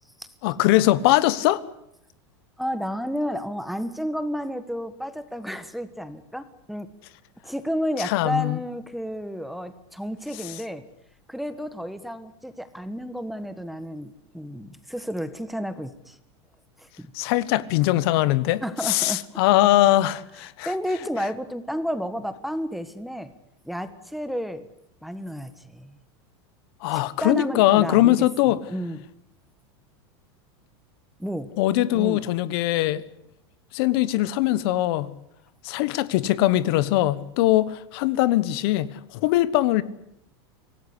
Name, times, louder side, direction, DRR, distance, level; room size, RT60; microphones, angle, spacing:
voice 1, 0.4-1.6 8.0-8.6 17.1-20.7 26.8-28.6 31.6-33.0 33.7-35.1 35.6-39.8, left 15 dB, 60° left, 1.2 m, -21 dB
voice 2, 2.6-6.9 7.4-10.8 11.3-16.2 16.8-17.1 18.6-19.2 20.6-23.3 23.6-24.7 25.0-26.0 26.9-29.0 31.2-31.5 31.9-32.3, equal, ahead, 1.4 m, -31 dB
25.5 x 17.0 x 9.9 m
supercardioid pair, 145°, 14 cm